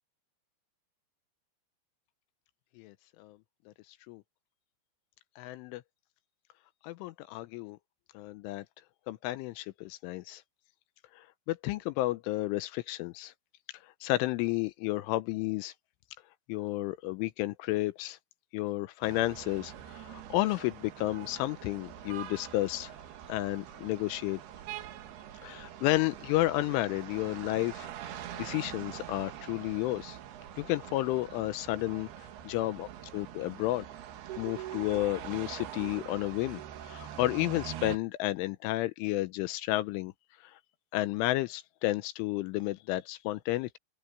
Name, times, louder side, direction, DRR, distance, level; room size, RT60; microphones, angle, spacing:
voice 1, 2.8-3.4 4.1-4.2 5.4-5.8 6.8-7.8 8.1-8.6 9.1-10.4 11.2-13.3 14.0-15.7 16.5-18.2 18.5-22.9 23.3-24.4 25.4-30.2 30.6-32.1 32.4-32.9 33.1-33.9 34.4-40.1 40.9-43.8, left 17 dB, 80° left, 3.0 m, -32 dB
sound 1, 19.0-38.0, right 11 dB, 60° right, 3.1 m, -44 dB
open air
omnidirectional pair, 5.9 m